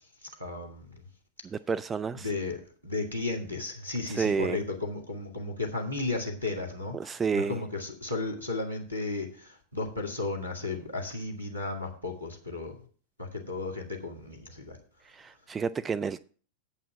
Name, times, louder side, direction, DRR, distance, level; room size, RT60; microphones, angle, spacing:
voice 1, 0.2-1.1 2.1-12.8 13.2-14.8, left 3 dB, 90° right, 2.2 m, -34 dB
voice 2, 1.4-2.3 4.1-4.6 6.9-7.6 15.1-16.2, right 6 dB, 20° right, 0.3 m, -30 dB
8.5 x 5.7 x 7.1 m
figure-of-eight pair, 90°, 0 cm